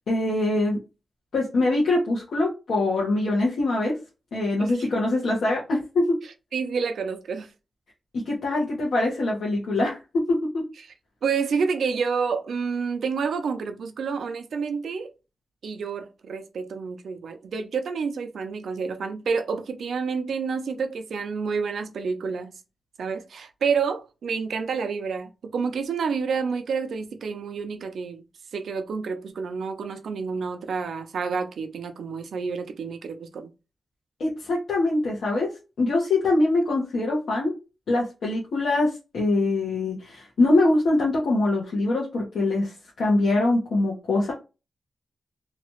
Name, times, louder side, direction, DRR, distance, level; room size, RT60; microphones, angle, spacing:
voice 1, 0.1-0.8 1.3-4.0 4.3-6.1 8.1-10.0 10.3-10.6 34.2-35.5 35.8-37.5 37.9-44.3, left 2 dB, 80° left, 1.0 m, -23 dB
voice 2, 6.5-7.5 11.2-15.1 15.6-22.5 23.0-28.2 28.5-33.5, right 5 dB, 75° right, 0.5 m, -29 dB
2.9 x 2.4 x 3.0 m
wide cardioid pair, 180°, 0 cm